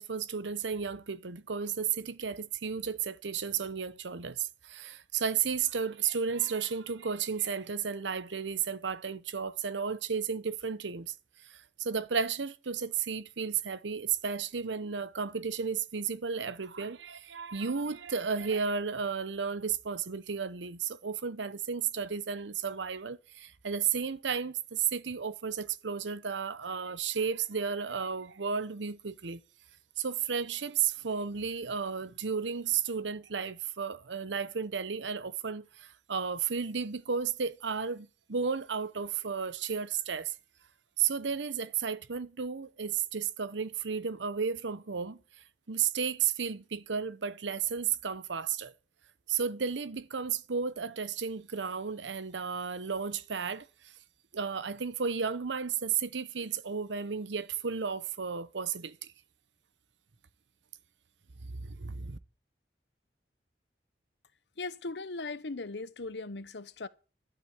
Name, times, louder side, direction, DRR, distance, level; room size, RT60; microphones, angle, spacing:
voice 1, 0.0-11.1 11.4-29.4 30.0-40.3 41.0-48.7 49.3-53.9 54.3-59.1 61.5-62.2, right 6 dB, 90° right, 0.8 m, -33 dB
voice 2, 64.6-66.9, left 3 dB, 75° left, 0.9 m, -38 dB
12.0 x 8.0 x 8.0 m
head